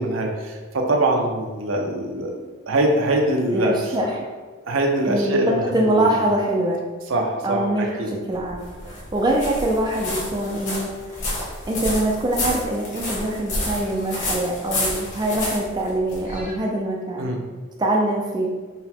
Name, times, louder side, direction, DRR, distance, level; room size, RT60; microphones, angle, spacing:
voice 1, 0.0-2.3 2.7-3.7 4.7-6.1 7.1-8.1 17.2-17.4, right 1 dB, 70° right, 1 dB, 0.6 m, -23 dB
voice 2, 3.5-4.3 5.1-6.8 7.4-11.3 11.7-17.3 17.8-18.5, right 1 dB, 20° right, -1 dB, 0.3 m, -24 dB
sound 1, 8.3-16.5, left 2 dB, 40° left, 1.1 m, -29 dB
4.0 x 2.2 x 4.2 m, 1.3 s
head